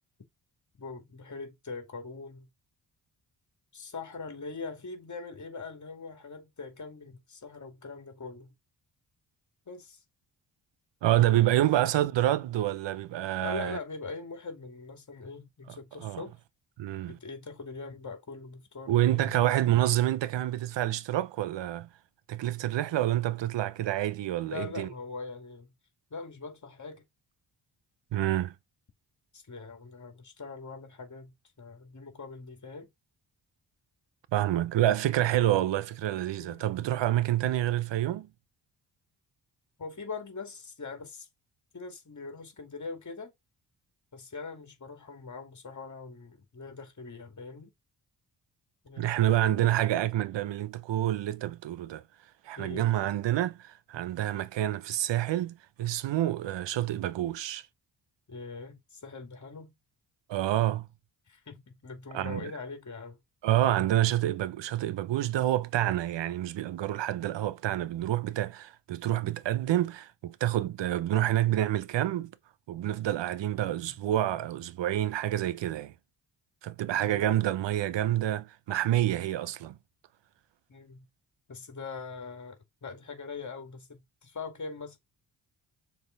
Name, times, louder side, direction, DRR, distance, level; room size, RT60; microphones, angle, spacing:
voice 1, 0.8-2.5 3.7-8.5 9.7-10.0 11.5-11.9 13.4-16.3 17.1-19.5 19.9-20.0 24.4-25.7 26.1-27.0 29.3-32.9 36.4-36.7 39.8-41.3 41.7-43.3 44.1-47.7 48.8-49.7 52.6-53.0 58.3-59.7 61.3-63.2 73.7-74.0 77.0-77.4 80.7-81.1 81.5-85.0, left 4 dB, 40° left, 2.6 m, -42 dB
voice 2, 11.0-13.8 16.0-16.2 16.8-17.2 18.9-21.9 22.3-24.9 28.1-28.5 34.3-38.3 49.0-52.0 52.4-57.7 60.3-60.9 62.1-62.5 63.4-72.3 72.7-75.9 76.6-79.8, right 13 dB, 80° right, 0.7 m, -28 dB
6.7 x 3.6 x 4.6 m
cardioid pair, 75°, 43 cm